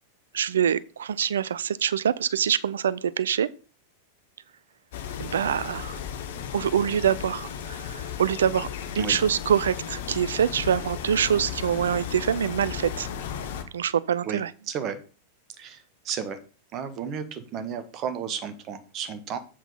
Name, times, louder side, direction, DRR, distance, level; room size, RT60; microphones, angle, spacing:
voice 1, 0.3-3.5 5.2-6.0 6.5-8.7 9.0-13.1 13.7-14.5, right 8 dB, 65° right, 0.4 m, -25 dB
sound 1, 4.9-13.6, left 8 dB, 55° left, 1.2 m, -35 dB
voice 2, 14.2-15.0 15.6-16.4 16.7-19.4, right 7 dB, 35° right, 1.4 m, -33 dB
7.8 x 5.9 x 5.5 m
figure-of-eight pair, 90°, 0 cm